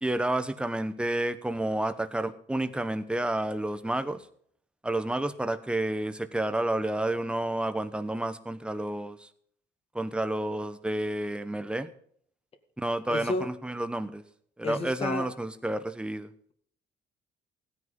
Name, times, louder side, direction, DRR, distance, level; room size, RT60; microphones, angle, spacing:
voice 1, 0.0-4.2 4.8-9.3 9.9-11.9 12.8-14.2 14.6-16.3, right 1 dB, 5° right, 1.1 m, -30 dB
voice 2, 13.1-13.5 14.6-15.3, left 3 dB, 35° left, 1.9 m, -31 dB
16.5 x 9.8 x 5.4 m
cardioid pair, 110°, 17 cm